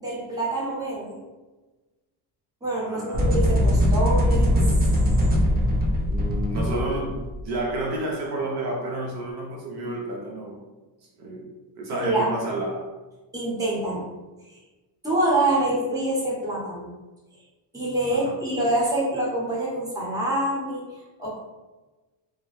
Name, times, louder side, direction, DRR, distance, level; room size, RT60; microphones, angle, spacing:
voice 1, 0.0-1.2 2.6-4.6 11.9-12.2 13.3-14.1 15.0-16.9 17.7-20.8 21.2-21.4, right 1 dB, 10° right, -6 dB, 0.8 m, -26 dB
voice 2, 2.9-3.3 6.1-10.6 11.2-11.5 11.8-12.9 18.1-18.4, right 1 dB, 60° right, -1 dB, 0.6 m, -30 dB
sound 1, 3.1-7.4, equal, 25° right, 0.3 m, -21 dB
2.1 x 2.0 x 2.9 m, 1.2 s
cardioid pair, 110°, 45 cm